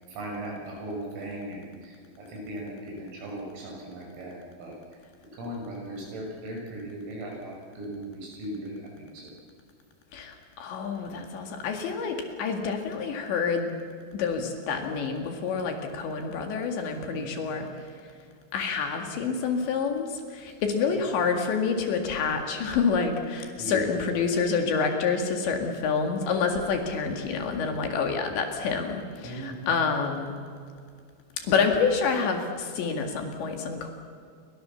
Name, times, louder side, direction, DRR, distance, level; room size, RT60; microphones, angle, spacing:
voice 1, 0.2-1.6 2.3-4.3 4.6-4.7 5.4-9.3 17.0-17.2 23.6-23.8 29.2-29.7 31.5-31.6, right 1 dB, 80° right, -1 dB, 9.4 m, -37 dB
voice 2, 10.1-13.7 14.1-17.7 18.5-30.3 31.5-33.9, left 5 dB, 65° left, 4 dB, 4.3 m, -28 dB
29.5 x 23.5 x 7.1 m, 2.2 s
omnidirectional pair, 5.9 m